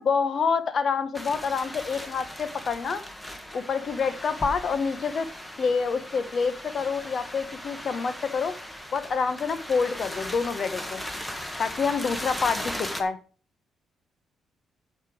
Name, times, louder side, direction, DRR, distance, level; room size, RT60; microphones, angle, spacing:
voice 1, 0.0-3.0 3.5-5.3 5.6-8.5 8.9-11.0 11.6-13.2, left 5 dB, 50° left, 12 dB, 1.0 m, -27 dB
sound 1, 1.1-13.0, left 1 dB, 10° left, 1.4 m, -38 dB
9.5 x 6.7 x 4.7 m, 0.40 s
cardioid pair, 90°, 0 cm